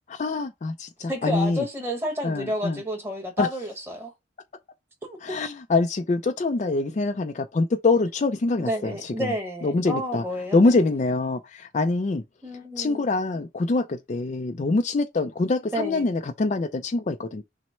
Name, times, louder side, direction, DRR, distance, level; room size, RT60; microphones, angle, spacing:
voice 1, 0.1-1.6 2.2-2.8 3.4-3.5 5.2-9.3 9.6-10.2 10.5-12.2 12.8-17.4, left 3 dB, 35° left, 0.3 m, -24 dB
voice 2, 1.1-4.1 5.0-5.4 6.7-6.8 8.6-10.8 12.4-13.0 15.7-16.1, equal, 10° right, 1.2 m, -30 dB
6.1 x 2.1 x 4.2 m
head